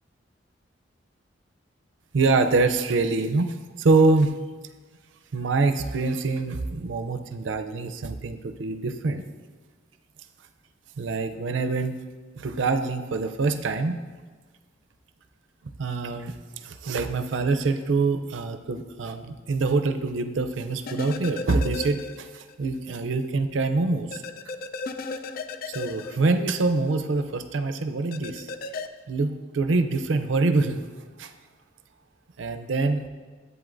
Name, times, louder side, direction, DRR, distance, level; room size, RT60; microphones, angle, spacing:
voice 1, 2.1-4.3 5.3-9.2 11.0-12.0 12.4-14.0 15.8-24.2 25.6-28.5 29.1-30.8 31.2-31.3 32.4-33.0, right 3 dB, 85° right, 8 dB, 0.5 m, -25 dB
sound 1, 20.9-22.6 22.9-23.0 24.1-26.9 28.1-28.9, left 3 dB, 50° left, 0.4 m, -35 dB
11.0 x 8.0 x 2.5 m, 1.4 s
head